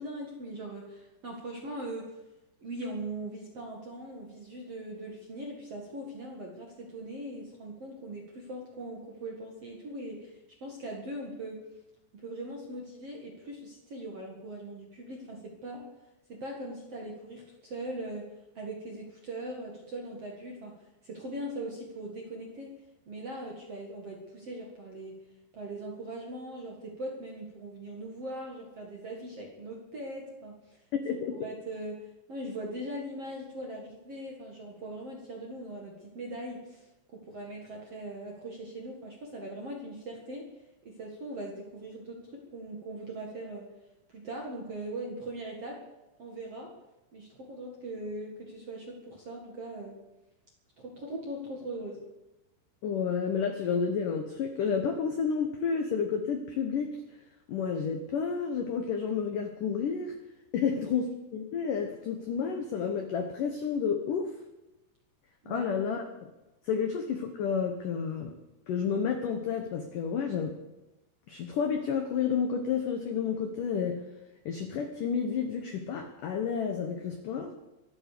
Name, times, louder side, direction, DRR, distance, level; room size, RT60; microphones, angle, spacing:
voice 1, 0.0-2.2 2.6-11.7 12.1-15.9 16.3-20.8 21.0-22.7 23.0-25.2 25.5-30.8 31.3-40.4 40.8-43.7 44.1-45.8 46.2-46.7 47.1-50.0 50.8-52.1 60.6-60.7 65.4-65.6, right 1 dB, 50° right, 0 dB, 1.8 m, -40 dB
voice 2, 52.8-56.9 57.5-60.1 60.5-61.0 61.3-64.3 65.4-66.1 66.7-68.3 68.7-70.5 71.3-74.0 74.4-77.5, left 6 dB, 90° left, 6 dB, 1.8 m, -30 dB
24.5 x 8.1 x 6.8 m, 1.0 s
omnidirectional pair, 5.7 m